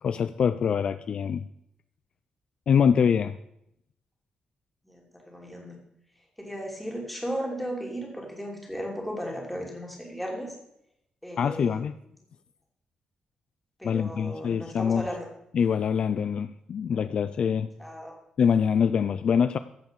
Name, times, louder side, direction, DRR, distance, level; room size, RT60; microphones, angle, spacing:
voice 1, 0.0-1.4 2.7-3.4 11.4-12.0 13.8-15.1 15.5-17.7 18.4-19.6, left 7 dB, 50° left, 12 dB, 0.4 m, -24 dB
voice 2, 4.8-5.8 6.4-10.5 11.2-11.8 13.8-15.3 17.8-18.1, equal, 5° left, -1 dB, 2.9 m, -35 dB
15.0 x 5.6 x 6.7 m, 0.78 s
wide cardioid pair, 155°, 2 cm